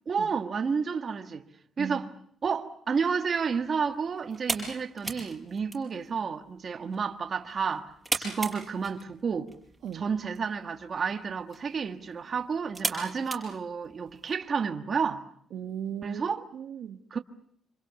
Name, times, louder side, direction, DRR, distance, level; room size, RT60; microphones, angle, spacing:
voice 1, 0.1-1.4 1.8-2.1 2.4-9.5 9.9-15.3 16.0-16.4 17.1-17.2, right 5 dB, 35° right, 1.6 m, -31 dB
voice 2, 1.8-2.1 9.8-10.1 15.5-17.0, right 8 dB, 65° right, 1.5 m, -37 dB
sound 1, 2.9-14.3, right 2 dB, 5° right, 5.0 m, -39 dB
26.5 x 26.5 x 7.1 m
cardioid pair, 165°, 0 cm